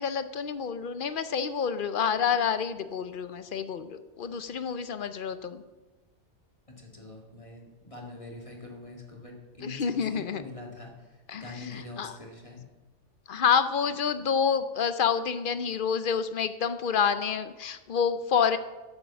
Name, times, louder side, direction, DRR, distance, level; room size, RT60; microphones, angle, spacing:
voice 1, 0.0-5.6 9.6-10.4 11.3-12.2 13.3-18.6, left 7 dB, 55° left, 12 dB, 0.8 m, -28 dB
voice 2, 6.7-10.9 11.3-12.7, left 2 dB, 30° left, 0 dB, 1.9 m, -44 dB
11.0 x 7.5 x 7.1 m, 1.2 s
omnidirectional pair, 1.2 m